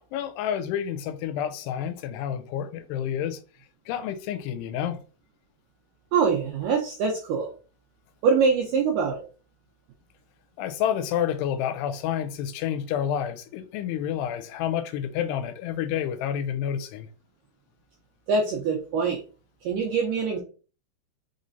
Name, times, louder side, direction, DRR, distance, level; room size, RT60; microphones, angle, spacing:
voice 1, 0.1-3.4 3.9-5.0 10.6-17.1, left 9 dB, 85° left, 2.7 m, -29 dB
voice 2, 6.1-7.5 8.2-9.2 18.3-19.2 19.7-20.4, right 5 dB, 85° right, 1.9 m, -24 dB
5.9 x 3.2 x 2.6 m
omnidirectional pair, 4.7 m